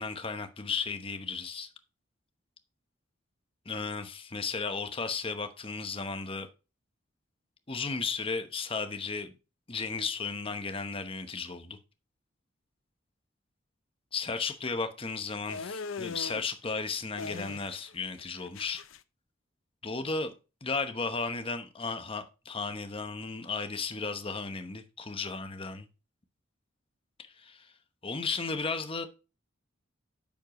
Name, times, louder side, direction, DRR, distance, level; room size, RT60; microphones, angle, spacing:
voice 1, 0.0-1.7 3.7-6.5 7.7-9.3 9.7-11.8 14.1-18.8 19.8-20.3 20.6-25.9 27.2-27.7 28.0-29.1, left 4 dB, 30° left, 1.0 m, -34 dB
sound 1, 15.5-16.5 17.2-17.9 18.2-19.0, left 4 dB, 90° left, 0.6 m, -40 dB
9.9 x 7.3 x 3.0 m
head